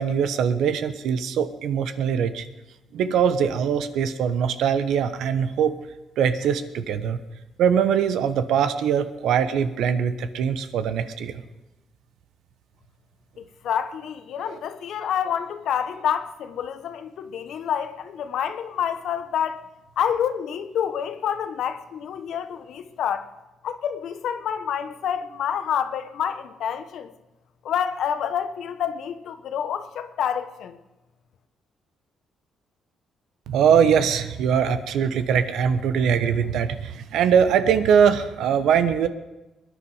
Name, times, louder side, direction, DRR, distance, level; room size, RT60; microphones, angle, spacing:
voice 1, 0.0-2.4 2.9-5.7 6.2-7.2 7.6-11.4 14.5-14.6 33.5-39.1, right 7 dB, 80° right, 1.0 m, -22 dB
voice 2, 13.4-19.6 20.0-23.3 23.6-27.1 27.6-30.8, left 8 dB, 75° left, 1.1 m, -28 dB
22.0 x 10.0 x 5.0 m
cardioid pair, 90°, 0 cm